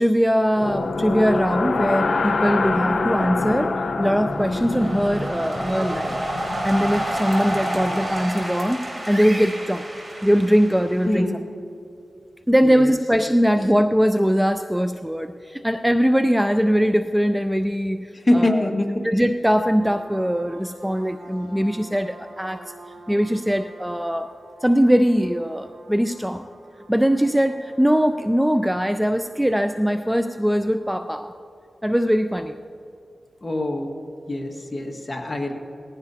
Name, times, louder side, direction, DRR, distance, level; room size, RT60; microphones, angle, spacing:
voice 1, 0.0-6.2 6.6-9.9 10.2-11.3 12.5-18.7 19.0-22.7 23.1-24.3 24.6-26.5 26.9-31.3 31.8-32.6, equal, 5° right, 9 dB, 0.4 m, -21 dB
sound 1, 0.5-8.6, left 3 dB, 65° left, 0.9 m, -26 dB
sound 2, 4.3-11.2, right 1 dB, 35° right, 3.8 m, -29 dB
voice 2, 11.0-11.5 12.6-12.9 13.6-13.7 18.1-19.1 33.4-34.0 34.3-35.5, left 1 dB, 30° left, 1 dB, 1.8 m, -24 dB
sound 3, 19.8-31.1, right 1 dB, 85° right, 1.4 m, -48 dB
19.5 x 15.5 x 2.8 m, 2.6 s
cardioid pair, 70°, 0 cm